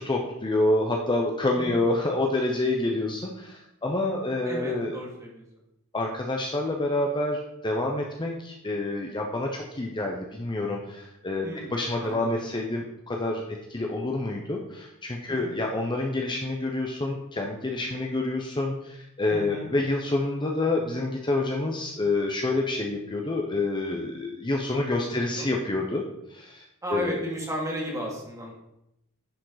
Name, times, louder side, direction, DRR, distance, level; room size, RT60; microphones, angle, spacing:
voice 1, 0.0-5.0 5.9-26.0 26.3-27.2, left 2 dB, 20° left, 1 dB, 0.7 m, -28 dB
voice 2, 4.5-5.4 11.4-11.7 12.0-12.4 15.3-15.5 19.3-19.7 25.0-25.5 26.8-28.5, equal, 15° right, -3 dB, 2.2 m, -34 dB
10.5 x 5.1 x 3.9 m, 0.85 s
head